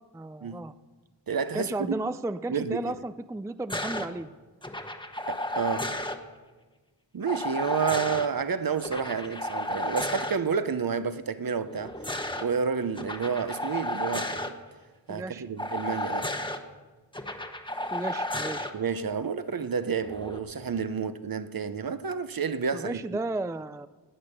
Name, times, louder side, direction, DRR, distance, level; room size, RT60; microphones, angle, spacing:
voice 1, 0.1-0.7 1.5-4.3 15.1-15.4 17.9-18.7 22.7-23.9, right 2 dB, 5° right, 0.3 m, -33 dB
voice 2, 1.3-2.0 2.5-2.9 5.3-6.0 7.1-14.4 15.1-16.3 18.7-23.0, right 6 dB, 50° right, 0.8 m, -30 dB
sound 1, 3.7-4.1 4.6-6.2 7.3-8.3 8.8-10.4 11.7-12.4 13.0-14.5 15.6-16.6 17.1-18.7 20.0-20.4, left 1 dB, 10° left, 1.1 m, -33 dB
18.0 x 8.7 x 6.6 m
wide cardioid pair, 65°, 45 cm